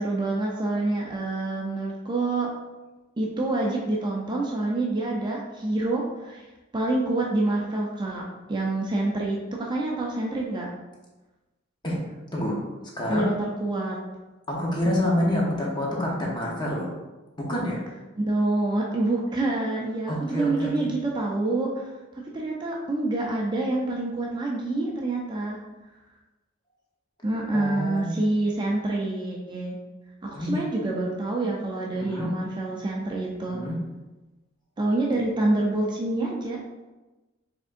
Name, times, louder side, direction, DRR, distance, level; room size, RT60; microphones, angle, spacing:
voice 1, 0.0-2.5 3.2-6.4 6.7-8.2 8.5-10.7 13.1-14.0 18.2-21.9 22.3-25.6 27.2-29.8 30.2-33.6 34.8-36.6, right 2 dB, 25° right, -2 dB, 0.5 m, -27 dB
voice 2, 13.0-13.3 14.5-16.9 17.5-17.8 20.1-20.9 27.5-28.2 30.3-30.6 31.9-32.4 33.5-33.8, left 1 dB, 25° left, -3 dB, 0.9 m, -27 dB
5.0 x 3.6 x 2.5 m, 1.1 s
head